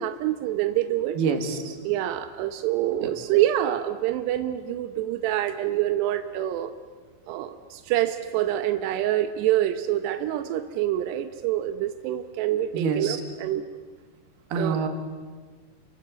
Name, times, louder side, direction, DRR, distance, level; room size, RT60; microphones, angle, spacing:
voice 1, 0.0-1.2 1.8-6.7 7.3-13.7 14.5-14.8, right 13 dB, 80° right, 9 dB, 2.5 m, -26 dB
voice 2, 1.2-1.8 3.0-3.1 12.7-13.2 14.5-14.9, right 5 dB, 55° right, 6 dB, 3.7 m, -26 dB
29.5 x 24.0 x 8.1 m, 1.5 s
omnidirectional pair, 5.9 m